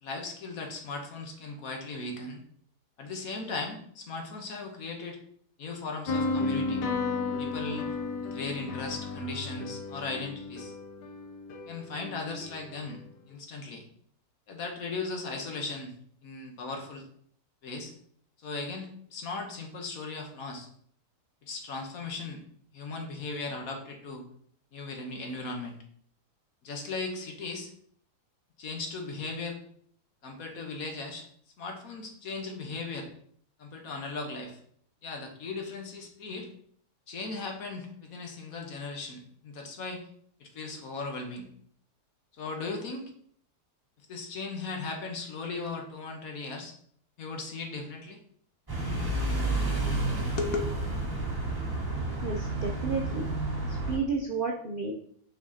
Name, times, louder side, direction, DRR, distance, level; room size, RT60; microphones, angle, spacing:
voice 1, 0.0-2.4 3.0-5.2 5.6-6.8 7.4-7.9 8.2-10.7 11.7-13.0 13.3-13.8 14.5-15.9 16.2-17.1 17.6-17.9 18.4-20.7 21.4-22.4 22.7-24.3 24.7-25.8 26.6-27.7 28.6-29.6 30.2-31.3 31.6-33.1 33.6-34.6 35.0-36.5 37.1-40.0 40.4-41.5 42.3-43.1 44.1-46.7 47.2-48.2 50.2-50.8, left 3 dB, 60° left, 3 dB, 1.4 m, -37 dB
sound 1, 6.1-13.0, left 3 dB, 80° left, 1.4 m, -34 dB
sound 2, 48.7-54.0, right 2 dB, 15° right, 1.7 m, -30 dB
voice 2, 52.2-53.3 53.7-54.9, right 4 dB, 55° right, 0 dB, 0.5 m, -32 dB
6.1 x 5.9 x 2.8 m, 0.62 s
omnidirectional pair, 1.8 m